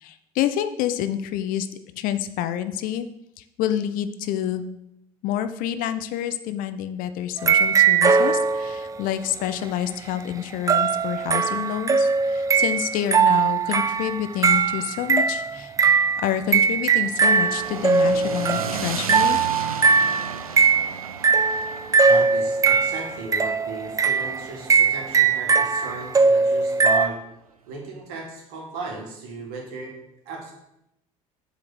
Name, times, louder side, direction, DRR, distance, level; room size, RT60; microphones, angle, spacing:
voice 1, 0.0-1.7 2.0-3.1 3.6-4.8 5.2-15.7 16.2-19.4, left 10 dB, 50° left, 11 dB, 0.5 m, -28 dB
sound 1, 7.4-9.0 10.7-27.1, right 5 dB, 20° right, 0.4 m, -20 dB
sound 2, 17.1-25.3, right 5 dB, 85° right, 0.4 m, -35 dB
voice 2, 22.0-27.2 27.7-30.0 30.3-30.5, right 3 dB, 60° right, 0 dB, 1.9 m, -35 dB
7.3 x 3.9 x 6.1 m, 0.84 s
figure-of-eight pair, 55°, 18 cm